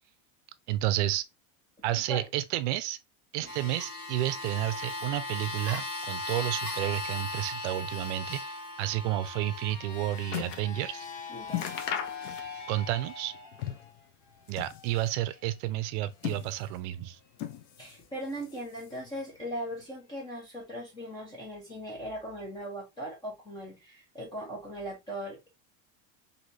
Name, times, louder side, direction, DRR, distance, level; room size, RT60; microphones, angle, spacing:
voice 1, 0.7-1.3 1.8-3.0 3.3-11.1 12.7-13.3 14.5-17.2, right 14 dB, 65° right, 0.5 m, -31 dB
sound 1, 3.4-13.9 14.7-14.8, left 2 dB, 45° left, 1.5 m, -38 dB
sound 2, 9.6-10.7 11.1-11.2 11.5-12.8 13.1-14.0 14.4-15.2 15.9-16.9 17.3-18.1 18.3-19.1 19.8-19.9, left 10 dB, 70° left, 0.6 m, -38 dB
voice 2, 11.3-11.7 17.8-25.5, equal, 10° left, 0.4 m, -39 dB
3.1 x 2.7 x 2.6 m
cardioid pair, 175°, 39 cm